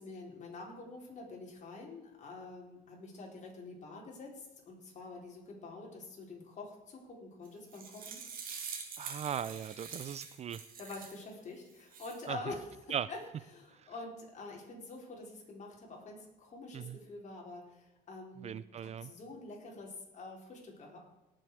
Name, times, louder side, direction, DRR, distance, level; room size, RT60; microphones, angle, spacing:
voice 1, 0.0-8.2 10.8-12.7 13.1-13.2 13.5-18.5 18.8-21.0, left 3 dB, 45° left, -1 dB, 4.4 m, -47 dB
sound 1, 7.4-11.2 11.7-12.2, right 6 dB, 55° right, 3.1 m, -45 dB
voice 2, 9.0-10.6 12.3-12.4 12.9-13.1 13.8-13.9 16.7-17.0 18.4-19.1, right 8 dB, 40° right, 18 dB, 0.4 m, -38 dB
18.5 x 7.7 x 4.9 m, 0.98 s
cardioid pair, 110°, 17 cm